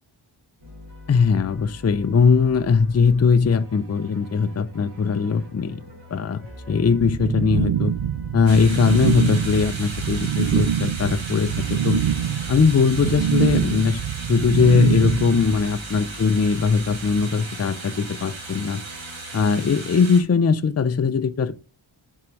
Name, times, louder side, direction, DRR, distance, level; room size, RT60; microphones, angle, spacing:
sound 1, 0.6-19.7, left 2 dB, 50° right, 2.7 m, -43 dB
voice 1, 1.1-5.8 6.1-7.9 8.3-12.0 12.5-14.0 14.3-18.8 19.3-21.6, left 5 dB, 30° left, 0.5 m, -20 dB
sound 2, 7.0-15.6, right 9 dB, 85° right, 0.6 m, -24 dB
sound 3, 8.5-20.2, right 3 dB, 65° right, 1.8 m, -37 dB
5.8 x 4.7 x 5.2 m
wide cardioid pair, 45°, 50 cm